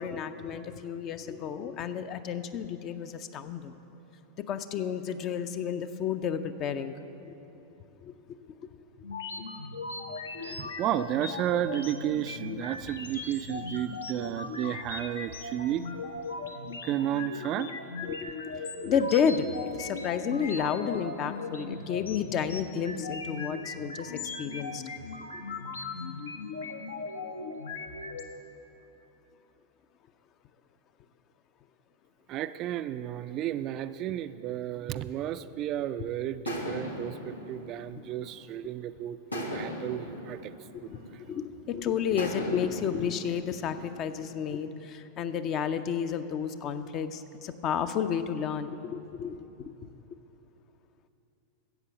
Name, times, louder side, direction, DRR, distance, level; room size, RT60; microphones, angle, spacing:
voice 1, 0.0-3.7 4.4-6.9 8.0-8.1 10.5-10.6 18.1-24.8 25.3-25.4 40.7-49.9, left 7 dB, 35° left, 10 dB, 0.5 m, -31 dB
sound 1, 9.0-28.2, left 3 dB, 70° left, 0.8 m, -38 dB
voice 2, 10.4-15.8 16.8-17.7 32.3-40.5 40.8-41.2, right 12 dB, 35° right, 12 dB, 0.3 m, -33 dB
sound 2, 36.5-38.7 39.3-41.5 42.2-44.4, left 1 dB, 90° left, 1.3 m, -39 dB
13.0 x 8.2 x 6.7 m, 3.0 s
figure-of-eight pair, 90°, 0 cm